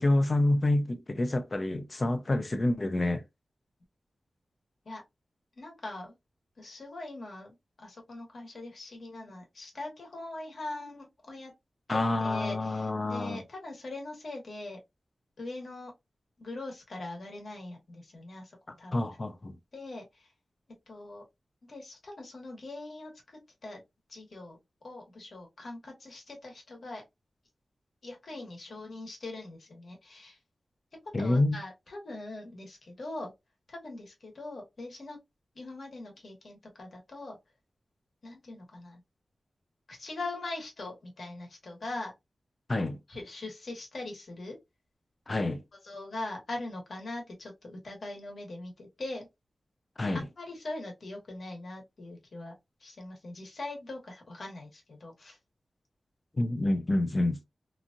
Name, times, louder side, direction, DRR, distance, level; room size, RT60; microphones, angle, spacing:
voice 1, 0.0-3.2 11.9-13.4 18.9-19.6 31.1-31.6 42.7-43.0 45.3-45.6 50.0-50.2 56.4-57.4, left 2 dB, 35° left, 0.5 m, -27 dB
voice 2, 5.6-6.1 6.6-11.5 11.9-14.8 15.4-15.9 16.4-18.9 19.7-20.3 20.9-21.2 21.7-23.8 24.1-27.0 28.0-30.4 30.9-33.3 33.7-35.2 35.5-37.4 38.2-39.0 39.9-42.1 43.1-44.6 45.8-49.3 50.4-55.4, left 2 dB, 60° left, 1.2 m, -42 dB
2.9 x 2.5 x 2.4 m
wide cardioid pair, 140°, 0 cm